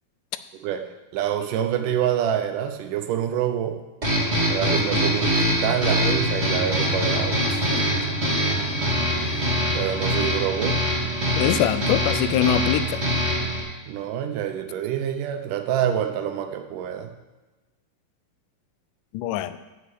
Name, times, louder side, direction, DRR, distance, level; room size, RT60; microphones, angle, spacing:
voice 1, 1.1-3.8 4.5-7.8 9.1-10.8 13.9-17.1, right 10 dB, 85° right, 7 dB, 2.4 m, -27 dB
sound 1, 4.0-13.6, equal, 25° right, 2.2 m, -23 dB
voice 2, 11.4-13.0 19.1-19.6, left 11 dB, 90° left, 13 dB, 2.1 m, -23 dB
6.7 x 6.3 x 7.7 m, 1.2 s
omnidirectional pair, 3.6 m